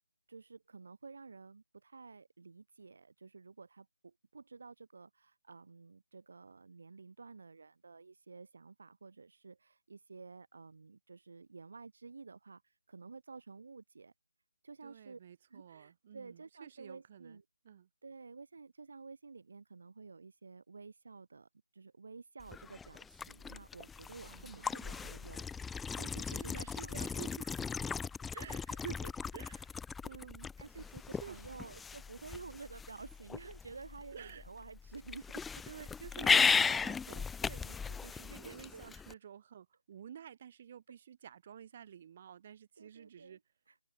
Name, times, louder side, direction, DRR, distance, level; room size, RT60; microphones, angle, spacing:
voice 1, 0.3-14.1 14.6-15.2 15.5-17.4 18.0-27.2 28.3-28.8 30.6-35.7 38.4-39.2 42.8-43.4 43.7-43.8, right 4 dB, 50° right, 2.0 m, -52 dB
voice 2, 14.8-17.4 17.6-17.9 24.2-25.1 26.2-27.5 28.3-29.0 29.3-30.8 31.2-31.7 34.1-34.4 35.6-43.4, right 9 dB, 25° right, 4.8 m, -51 dB
sound 1, 22.4-39.1, left 5 dB, 5° left, 0.3 m, -36 dB
hypercardioid pair, 175°, 0 cm